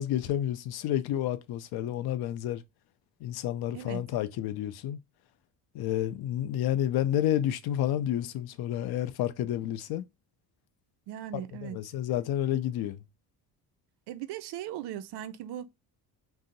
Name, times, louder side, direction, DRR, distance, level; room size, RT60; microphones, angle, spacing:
voice 1, 0.0-2.6 3.2-5.0 5.7-10.0 11.6-13.0, left 11 dB, 65° left, 0.5 m, -30 dB
voice 2, 11.1-11.8 14.1-15.7, right 12 dB, 75° right, 0.5 m, -38 dB
2.7 x 2.0 x 3.8 m
cardioid pair, 130°, 41 cm